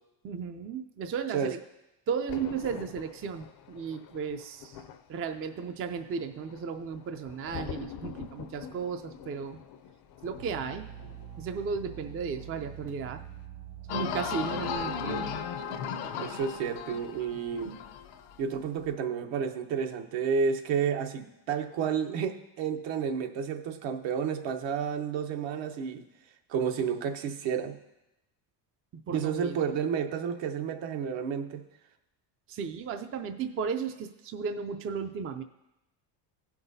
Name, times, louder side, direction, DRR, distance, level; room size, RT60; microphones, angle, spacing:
voice 1, 0.2-1.6 2.1-4.8 5.1-9.6 10.2-10.9 11.4-13.2 13.9-15.3 29.1-29.7 32.5-35.4, right 6 dB, 30° right, 8 dB, 0.4 m, -35 dB
Thunder, 2.3-12.9 13.2-13.5, left 8 dB, 45° left, 0.5 m, -46 dB
sound 1, 10.4-15.4, right 9 dB, 85° right, 2.5 m, -45 dB
sound 2, 13.9-18.4 18.8-18.9, left 7 dB, 85° left, 1.0 m, -35 dB
voice 2, 16.2-17.8 18.4-26.0 26.5-27.8 29.1-31.6, right 7 dB, 65° right, 7 dB, 0.9 m, -31 dB
16.5 x 5.9 x 2.7 m, 0.93 s
cardioid pair, 110°, 49 cm